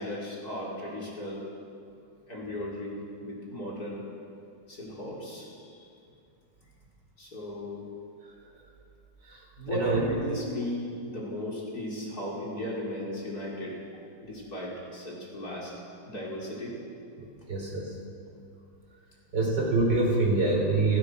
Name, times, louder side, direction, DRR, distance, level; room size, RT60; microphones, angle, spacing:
voice 1, 0.0-1.4 2.3-4.0 4.7-5.9 7.2-7.8 9.6-13.8 14.2-15.7 16.1-16.7, equal, 50° left, -5 dB, 4.8 m, -36 dB
voice 2, 9.2-10.0 17.2-18.0 19.3-21.0, right 3 dB, 65° right, -1 dB, 4.9 m, -26 dB
30.0 x 13.5 x 6.5 m, 2.4 s
omnidirectional pair, 2.0 m